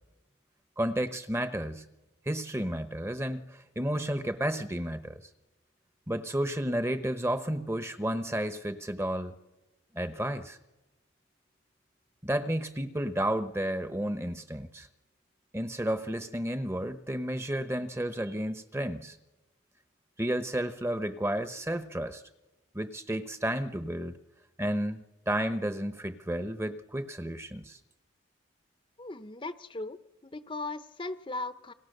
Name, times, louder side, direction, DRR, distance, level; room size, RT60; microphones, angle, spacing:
voice 1, 0.8-1.8 2.3-5.2 6.1-9.3 9.9-10.6 12.2-14.9 15.5-19.2 20.2-22.2 22.7-24.1 24.6-27.8, right 1 dB, 15° right, 10 dB, 1.0 m, -32 dB
voice 2, 29.0-31.7, left 2 dB, 25° left, 11 dB, 0.8 m, -38 dB
30.0 x 25.0 x 6.7 m, 1.0 s
head